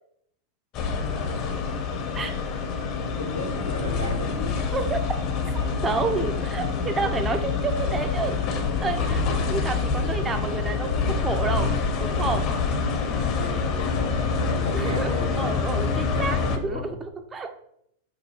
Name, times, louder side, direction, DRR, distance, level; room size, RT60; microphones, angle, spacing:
sound 1, 0.7-16.6, left 5 dB, 40° left, 0.5 m, -26 dB
voice 1, 3.2-4.5 13.3-15.4 15.9-17.0, left 1 dB, 90° right, 0 dB, 0.9 m, -34 dB
voice 2, 5.8-8.4 8.8-11.7 12.0-12.4 14.7-17.6, right 4 dB, 20° right, 6 dB, 0.4 m, -29 dB
4.8 x 2.2 x 4.0 m, 0.74 s
figure-of-eight pair, 90°, 0 cm